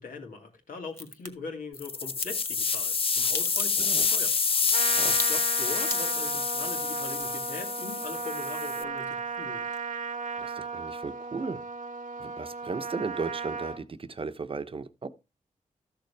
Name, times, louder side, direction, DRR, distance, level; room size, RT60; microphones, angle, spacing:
voice 1, 0.0-4.3 4.6-9.7, left 4 dB, 85° left, 2.5 m, -41 dB
Crack, 0.9-1.3 2.2-8.5 8.8-9.4 9.7-9.8, left 1 dB, 20° left, 1.7 m, -38 dB
sound 1, 1.7-8.8, left 5 dB, 45° left, 0.5 m, -28 dB
Trumpet, 4.7-13.8, right 5 dB, 80° right, 1.2 m, -35 dB
voice 2, 10.4-11.6 12.2-15.1, right 4 dB, 40° right, 0.9 m, -36 dB
13.5 x 6.7 x 3.4 m
wide cardioid pair, 85°, 14 cm